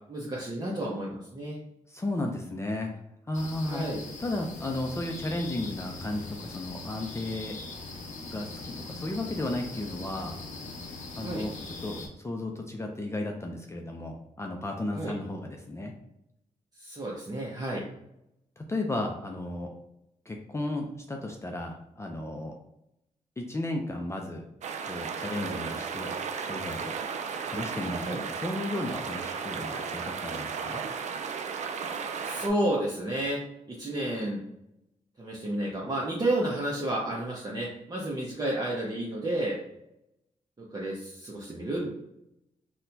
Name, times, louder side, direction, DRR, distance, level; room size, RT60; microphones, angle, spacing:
voice 1, 0.1-1.6 3.6-4.0 11.2-11.5 14.9-15.1 16.8-17.9 28.0-28.2 32.2-33.4 33.7-34.4 35.2-39.6 40.6-41.9, right 1 dB, 30° right, -5 dB, 0.7 m, -31 dB
voice 2, 1.9-2.9 3.3-3.8 4.2-7.6 8.3-10.4 11.1-15.9 18.6-19.7 20.3-22.5 23.4-24.5 24.8-26.1 26.4-26.9 27.5-30.8, left 2 dB, 20° left, 2 dB, 0.4 m, -34 dB
sound 1, 3.3-12.1, left 3 dB, 70° left, 0.7 m, -41 dB
sound 2, 24.6-32.5, right 6 dB, 65° right, 0.4 m, -34 dB
4.1 x 2.2 x 2.6 m, 0.82 s
cardioid pair, 75°, 13 cm